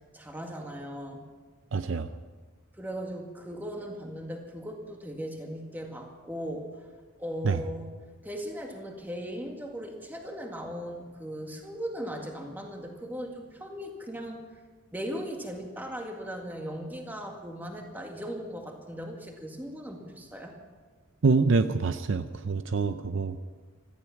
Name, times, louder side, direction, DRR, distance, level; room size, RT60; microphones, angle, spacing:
voice 1, 0.1-1.2 2.7-6.9 7.2-7.9 8.2-14.4 14.9-20.5, equal, 10° right, 2 dB, 2.0 m, -38 dB
voice 2, 1.7-2.1 7.4-7.6 21.2-23.4, right 4 dB, 60° right, 10 dB, 0.6 m, -25 dB
17.0 x 14.5 x 5.8 m, 1.4 s
head